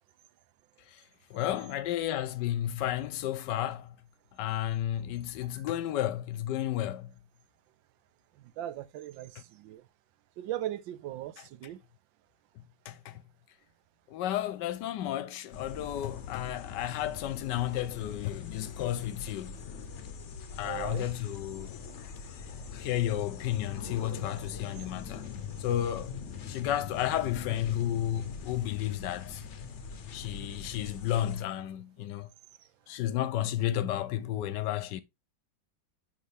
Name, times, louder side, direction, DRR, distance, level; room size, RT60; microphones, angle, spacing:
voice 1, 1.3-3.9 4.4-7.1 12.9-13.2 14.1-19.6 20.5-21.7 22.7-25.2 25.6-26.2 26.5-29.4 30.1-32.3 32.9-35.0, left 12 dB, 75° left, 1.2 m, -32 dB
voice 2, 8.4-9.8 10.4-11.8 20.6-21.1, right 13 dB, 85° right, 1.4 m, -39 dB
sound 1, 15.5-31.4, left 6 dB, 55° left, 0.8 m, -42 dB
9.5 x 3.7 x 3.3 m
omnidirectional pair, 2.0 m